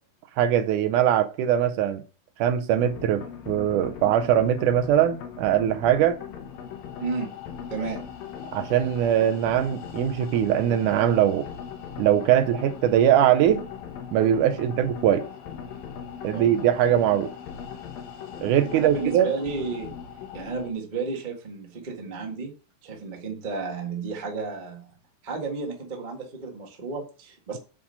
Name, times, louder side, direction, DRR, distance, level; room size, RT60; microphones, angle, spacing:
voice 1, 0.4-2.0 2.4-6.2 8.5-11.5 12.0-13.6 14.1-15.2 16.2-17.3 18.4-19.3, right 10 dB, 75° right, 2.0 m, -21 dB
sound 1, 2.8-20.7, left 8 dB, 90° left, 3.1 m, -39 dB
voice 2, 7.0-7.3 7.7-8.0 16.3-16.5 18.7-19.9 20.3-22.5 22.8-24.9 25.2-27.6, right 4 dB, 50° right, 0.5 m, -32 dB
8.7 x 4.9 x 5.5 m
omnidirectional pair, 4.0 m